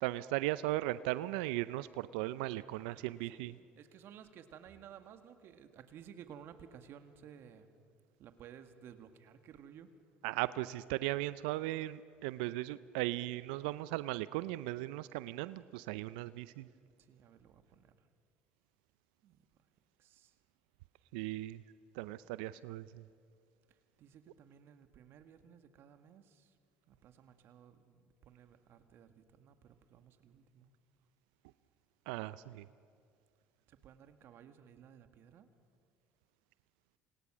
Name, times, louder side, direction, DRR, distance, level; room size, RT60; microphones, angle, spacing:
voice 1, 0.0-3.6 10.2-16.7 21.1-21.6 22.0-23.0 32.1-32.6, right 17 dB, 75° right, 16 dB, 0.6 m, -37 dB
voice 2, 2.5-7.7 8.2-9.9 17.0-18.1 19.2-19.5 20.0-20.4 23.7-26.6 26.9-30.7 33.7-35.5, right 8 dB, 60° right, 8 dB, 1.9 m, -56 dB
28.5 x 27.0 x 6.2 m, 2.3 s
hypercardioid pair, 70°, 5 cm